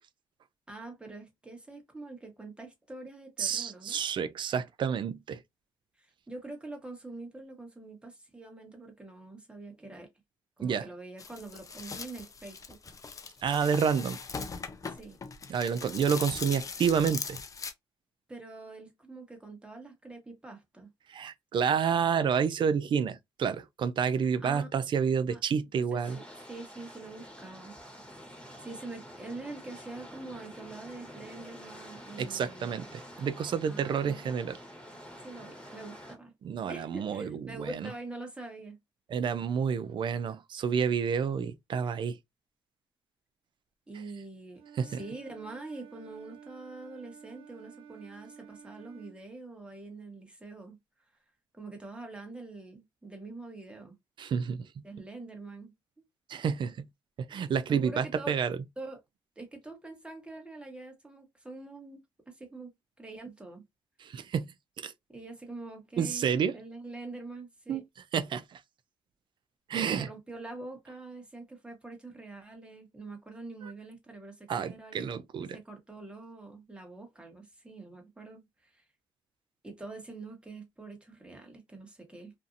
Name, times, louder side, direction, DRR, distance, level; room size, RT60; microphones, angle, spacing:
voice 1, 0.7-4.0 6.0-10.1 10.6-12.9 14.9-15.2 18.3-20.9 24.4-24.7 25.1-25.4 25.9-27.7 28.6-32.8 33.6-34.3 35.2-36.3 36.7-38.8 43.9-50.8 51.5-54.0 54.8-55.7 57.7-58.4 58.8-59.0 59.4-63.6 65.1-66.3 66.5-67.8 69.7-75.1 75.5-78.8 79.6-82.3, right 2 dB, 10° right, 1.2 m, -45 dB
voice 2, 3.4-5.4 10.6-10.9 13.4-14.2 15.5-17.4 21.1-26.2 32.2-34.6 36.4-37.7 39.1-42.2 44.8-45.0 54.2-54.8 56.3-56.9 57.2-58.6 64.0-64.9 66.0-66.5 67.7-67.8 68.1-68.6 69.7-70.1 73.6-73.7 74.5-75.6, right 7 dB, 55° right, 0.4 m, -29 dB
sound 1, 11.2-17.7, left 5 dB, 35° left, 0.5 m, -40 dB
sound 2, 26.0-36.1, equal, 10° left, 1.3 m, -48 dB
Wind instrument woodwind instrument, 44.6-49.2, right 8 dB, 75° right, 0.9 m, -52 dB
2.6 x 2.5 x 2.5 m
cardioid pair, 75°, 10 cm